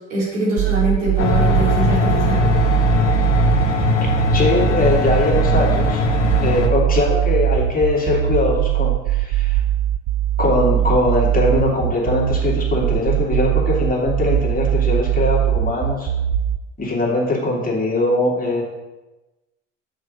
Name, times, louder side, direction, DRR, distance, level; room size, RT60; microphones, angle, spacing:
voice 1, 0.0-2.4, right 1 dB, 75° right, -6 dB, 3.7 m, -23 dB
sound 1, 0.6-16.6, right 12 dB, 50° right, 0.6 m, -20 dB
sound 2, 1.2-6.7, left 4 dB, 75° left, 1.0 m, -20 dB
voice 2, 4.3-6.1 6.4-9.6 10.4-16.1 16.8-18.6, left 2 dB, 25° left, -3 dB, 2.8 m, -21 dB
6.9 x 6.3 x 6.7 m, 1.1 s
figure-of-eight pair, 60°, 36 cm